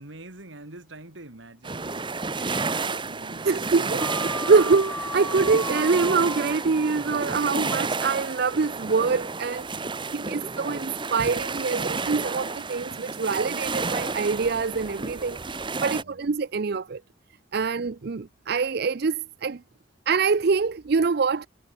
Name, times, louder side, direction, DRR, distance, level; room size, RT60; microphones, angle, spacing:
voice 1, 0.0-4.4 9.7-10.4 15.7-16.2 17.5-17.7, right 2 dB, 70° right, 2.9 m, -46 dB
sound 1, 1.6-16.0, right 4 dB, 25° right, 1.1 m, -31 dB
voice 2, 3.5-4.1 4.5-9.7 10.1-15.4 15.8-17.0 17.5-19.6 20.1-21.5, right 4 dB, 55° right, 0.5 m, -24 dB
sound 2, 4.0-8.5, left 2 dB, 5° left, 1.4 m, -37 dB
sound 3, 10.6-15.8, left 3 dB, 90° left, 3.7 m, -50 dB
head